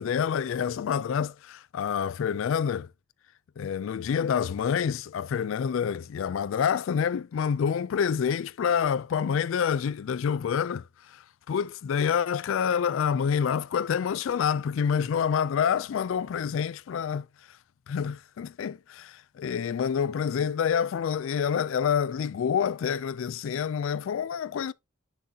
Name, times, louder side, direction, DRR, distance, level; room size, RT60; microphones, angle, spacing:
voice 1, 0.0-2.9 3.6-17.2 17.9-24.7, left 7 dB, 65° left, 0.3 m, -27 dB
7.8 x 6.7 x 2.7 m
head